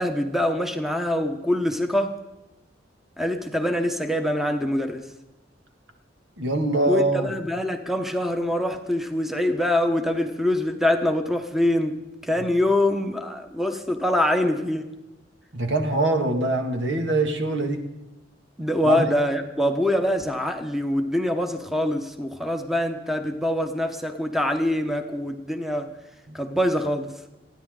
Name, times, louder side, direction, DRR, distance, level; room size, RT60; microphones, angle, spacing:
voice 1, 0.0-2.2 3.2-5.1 6.9-12.0 12.2-14.9 18.6-25.9 26.3-27.1, left 1 dB, ahead, 6 dB, 1.1 m, -24 dB
voice 2, 6.4-7.3 15.5-17.8 18.8-19.1 26.3-26.4, right 2 dB, 70° right, 4 dB, 2.1 m, -23 dB
29.5 x 10.0 x 3.9 m, 1.0 s
head